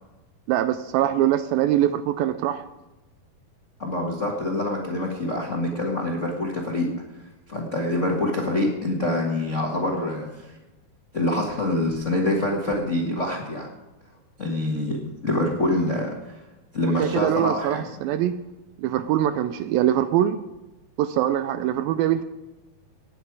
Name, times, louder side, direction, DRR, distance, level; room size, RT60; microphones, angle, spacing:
voice 1, 0.5-2.7 17.0-18.3 18.8-20.4 21.0-22.2, right 12 dB, 85° right, 11 dB, 2.2 m, -23 dB
voice 2, 3.8-6.9 7.5-10.5 11.1-13.7 14.4-16.4 16.7-17.9, left 1 dB, 80° left, -2 dB, 0.6 m, -25 dB
18.0 x 8.9 x 4.7 m, 1.1 s
omnidirectional pair, 4.5 m